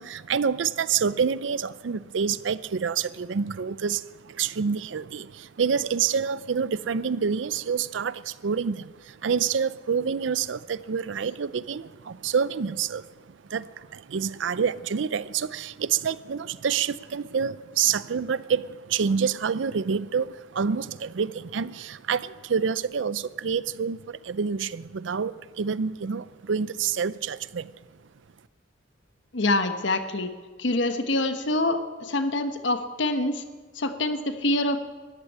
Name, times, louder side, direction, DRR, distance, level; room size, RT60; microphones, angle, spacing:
voice 1, 0.0-27.7, right 6 dB, 70° right, 18 dB, 0.5 m, -27 dB
voice 2, 29.3-30.3 30.6-33.4 33.7-34.8, left 2 dB, 70° left, 8 dB, 1.2 m, -25 dB
13.5 x 11.5 x 8.6 m, 1.4 s
head